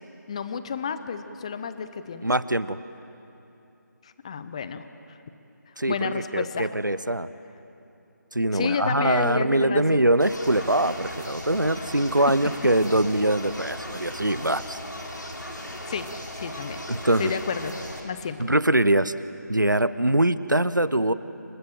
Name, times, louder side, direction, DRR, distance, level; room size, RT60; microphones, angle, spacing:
voice 1, 0.3-2.3 4.0-5.2 5.9-6.7 8.5-10.0 11.8-11.9 15.9-16.1 16.3-16.8 17.2-17.8 18.0-18.4, left 6 dB, 20° left, 12 dB, 0.7 m, -31 dB
voice 2, 2.2-2.8 5.8-7.3 8.3-14.8 16.9-17.3 18.4-19.1 19.5-21.1, right 1 dB, 85° right, 15 dB, 1.0 m, -23 dB
sound 1, 10.2-18.0, left 1 dB, 80° left, 4.4 m, -37 dB
28.5 x 22.5 x 7.7 m, 2.8 s
figure-of-eight pair, 160°, 10 cm